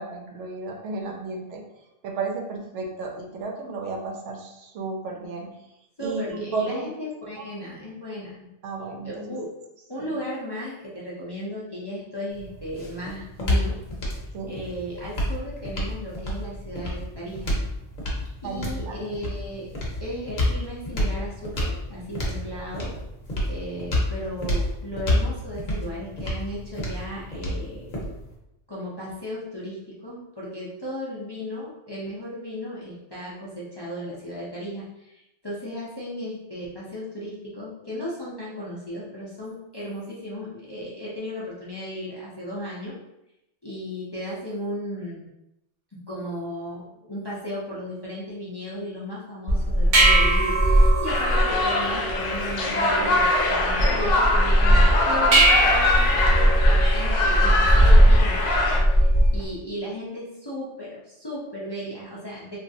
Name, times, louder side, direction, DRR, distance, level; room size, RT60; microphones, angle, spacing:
voice 1, 0.0-1.6 2.0-5.5 6.0-6.9 7.4-7.5 8.6-9.4 10.0-10.1 14.3-14.5 18.4-19.0, right 3 dB, 80° right, 2 dB, 0.9 m, -33 dB
voice 2, 6.0-8.5 9.0-9.5 9.9-13.8 14.1-14.2 14.5-17.5 18.4-19.7 20.0-23.0 23.5-27.9 28.7-43.0 43.6-45.3 46.1-62.6, equal, 30° left, -8 dB, 0.5 m, -35 dB
sound 1, 12.3-28.3, left 1 dB, 50° left, 0.8 m, -29 dB
sound 2, 49.5-59.4, right 1 dB, 40° right, 0.6 m, -19 dB
sound 3, 51.1-58.8, left 2 dB, 85° left, 0.9 m, -24 dB
3.0 x 2.5 x 2.6 m, 0.88 s
omnidirectional pair, 1.2 m